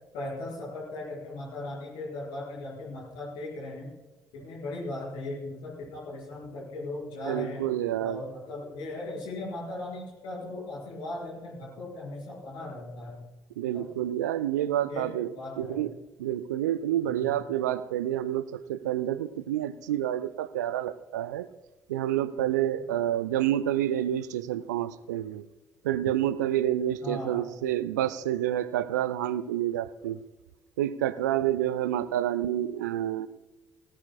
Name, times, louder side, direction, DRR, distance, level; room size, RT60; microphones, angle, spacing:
voice 1, 0.1-3.9 4.3-7.7 8.0-13.2 13.7-13.9 14.9-15.8 17.1-17.2 27.0-27.5, left 2 dB, 65° left, -4 dB, 4.9 m, -38 dB
voice 2, 7.2-8.2 13.6-15.3 15.6-15.9 16.2-21.5 21.9-25.4 25.8-30.2 30.8-33.3, right 12 dB, 75° right, 16 dB, 0.5 m, -28 dB
18.5 x 17.5 x 2.2 m, 1.1 s
figure-of-eight pair, 45°, 9 cm